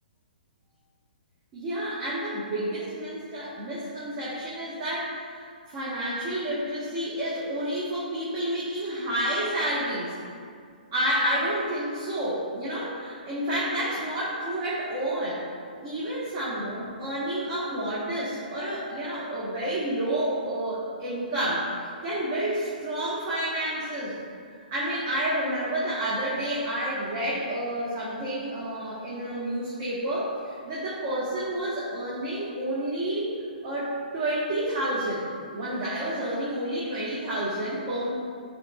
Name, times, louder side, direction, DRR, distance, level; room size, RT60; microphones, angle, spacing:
voice 1, 1.5-10.1 10.9-15.5 15.8-24.2 24.7-33.4 33.6-38.1, right 1 dB, 35° right, -8 dB, 1.4 m, -30 dB
10.0 x 4.5 x 2.4 m, 2.2 s
figure-of-eight pair, 120°, 5 cm